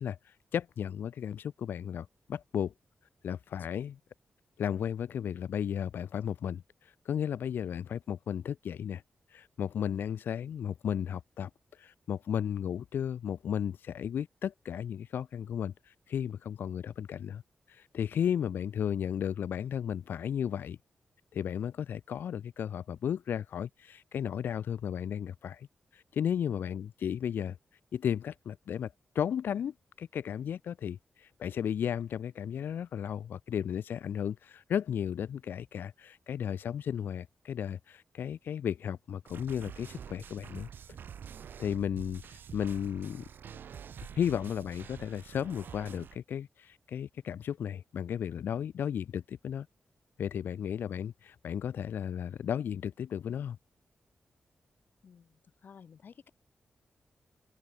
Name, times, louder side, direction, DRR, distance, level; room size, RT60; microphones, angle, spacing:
voice 1, 0.0-2.7 3.2-4.0 4.6-9.0 9.3-17.4 17.7-20.8 21.3-25.7 25.9-27.6 27.9-40.7 41.6-43.2 44.1-49.7 50.2-53.6, left 8 dB, 90° left, 0.9 m, -34 dB
sound 1, 39.3-46.2, right 8 dB, 80° right, 1.3 m, -47 dB
voice 2, 55.0-56.3, left 6 dB, 65° left, 3.9 m, -55 dB
open air
cardioid pair, 85°, 3 cm